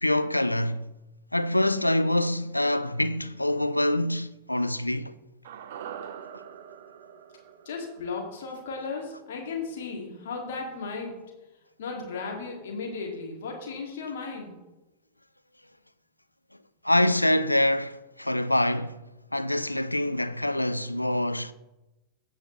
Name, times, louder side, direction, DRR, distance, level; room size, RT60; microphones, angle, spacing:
voice 1, 0.0-0.9 1.3-5.1 16.8-19.0 19.3-21.5, left 1 dB, 85° left, 0.4 m, -25 dB
sound 1, 5.4-9.8 10.0-10.1, right 8 dB, 55° right, 0.5 m, -44 dB
voice 2, 7.7-11.1 11.8-14.6, left 4 dB, 60° left, 2.1 m, -35 dB
16.5 x 5.6 x 3.0 m
figure-of-eight pair, 90°, 0 cm